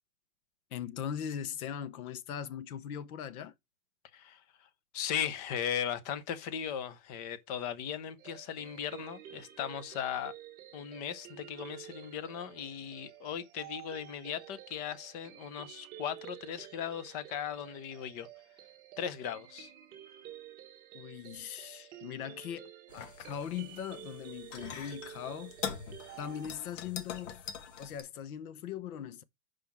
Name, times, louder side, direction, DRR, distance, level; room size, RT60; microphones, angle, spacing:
voice 1, 0.7-3.5 20.9-25.6 26.2-27.4 27.8-29.2, left 9 dB, 90° left, 1.0 m, -40 dB
voice 2, 4.1-10.3 10.7-18.3 19.0-19.7, left 9 dB, 30° left, 0.6 m, -38 dB
sound 1, 8.2-26.5, right 12 dB, 20° right, 1.2 m, -51 dB
sound 2, 22.9-28.0, left 7 dB, 60° left, 1.2 m, -43 dB
5.7 x 5.0 x 5.8 m
supercardioid pair, 175°, 42 cm